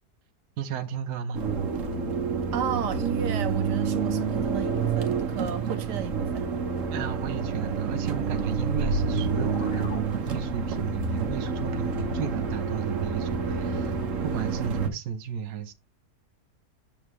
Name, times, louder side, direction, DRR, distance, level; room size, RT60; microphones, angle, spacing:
voice 1, 0.6-1.4 6.9-13.9 14.2-15.7, right 8 dB, 70° right, 1.4 m, -33 dB
sound 1, 1.3-14.9, right 5 dB, 50° right, 1.5 m, -28 dB
voice 2, 2.5-6.5, right 9 dB, 85° right, 1.6 m, -33 dB
sound 2, 8.1-10.8, left 2 dB, 90° left, 3.1 m, -34 dB
7.8 x 7.2 x 3.1 m
omnidirectional pair, 1.8 m